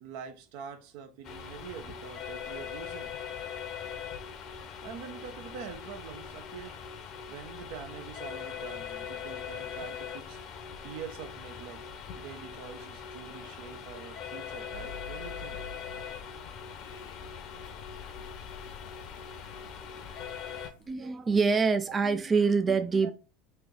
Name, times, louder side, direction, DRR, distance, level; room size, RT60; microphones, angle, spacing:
voice 1, 0.0-3.1 4.8-6.8 7.3-10.4 10.8-11.8 12.1-15.6 23.0-23.1, right 7 dB, 70° right, 0.7 m, -45 dB
sound 1, 1.2-20.7, left 7 dB, 55° left, 0.7 m, -41 dB
sound 2, 14.7-21.0, left 5 dB, 85° left, 0.4 m, -49 dB
voice 2, 20.9-23.1, right 5 dB, 25° right, 0.3 m, -25 dB
3.3 x 2.8 x 3.7 m
supercardioid pair, 95°, 0 cm